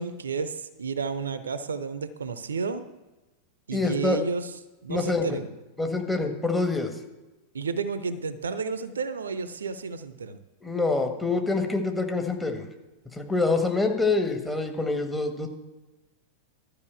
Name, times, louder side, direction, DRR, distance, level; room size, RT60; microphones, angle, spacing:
voice 1, 0.0-2.8 3.7-4.5 4.8-5.5 7.5-10.4, right 5 dB, 70° right, 13 dB, 0.7 m, -31 dB
voice 2, 3.7-4.2 4.9-5.3 5.8-6.9 10.6-12.7 13.1-15.5, left 3 dB, 10° left, 3 dB, 1.5 m, -26 dB
12.0 x 5.4 x 8.2 m, 1.1 s
figure-of-eight pair, 90°, 0 cm